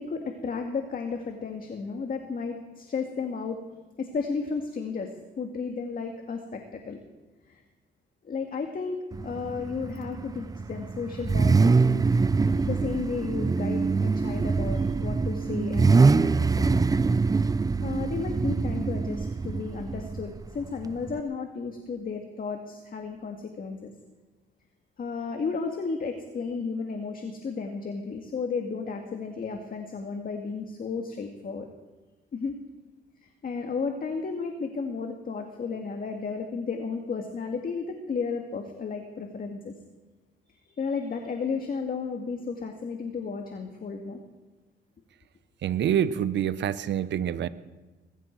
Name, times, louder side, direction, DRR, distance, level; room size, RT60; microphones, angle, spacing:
voice 1, 0.0-3.6 4.0-7.0 7.5-7.6 8.2-12.0 12.5-16.8 17.8-23.9 25.0-31.7 32.3-32.5 33.2-39.7 40.6-44.2, left 5 dB, 45° left, 4 dB, 2.0 m, -33 dB
Car / Idling / Accelerating revving vroom, 9.1-21.2, right 4 dB, 20° right, 0.5 m, -24 dB
voice 2, 45.6-47.5, right 9 dB, 65° right, 15 dB, 0.9 m, -26 dB
21.5 x 14.5 x 4.6 m, 1.2 s
cardioid pair, 90°, 20 cm